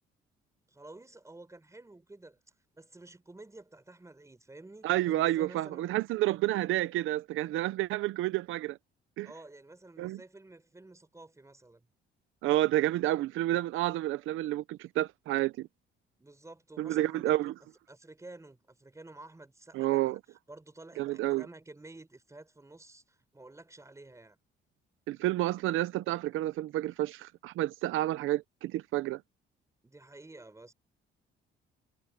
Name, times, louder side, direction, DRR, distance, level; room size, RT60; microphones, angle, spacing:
voice 1, 0.7-2.4 2.7-6.0 9.2-11.9 16.2-17.3 17.9-24.4 29.8-30.7, right 2 dB, 15° right, 4.2 m, -51 dB
voice 2, 4.8-8.8 9.2-9.3 10.0-10.2 12.4-15.7 16.8-17.5 19.7-20.2 21.0-21.5 25.1-29.2, right 15 dB, 90° right, 0.7 m, -30 dB
cardioid pair, 90°, 20 cm